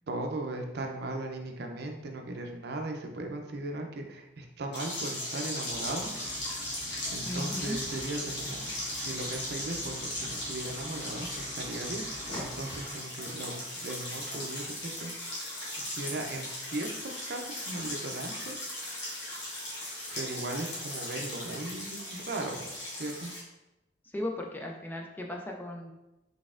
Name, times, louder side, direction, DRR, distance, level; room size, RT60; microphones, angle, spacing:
voice 1, 0.1-6.6 7.1-15.2 15.8-19.1 20.1-23.3, right 2 dB, 60° right, 3 dB, 0.5 m, -38 dB
sound 1, 4.7-23.4, left 1 dB, 70° left, 1.3 m, -38 dB
sound 2, 5.7-12.9, right 1 dB, 20° right, 1.5 m, -47 dB
voice 2, 7.2-7.8 24.1-25.9, left 1 dB, 10° left, 1 dB, 0.3 m, -36 dB
4.0 x 3.4 x 2.5 m, 0.97 s
head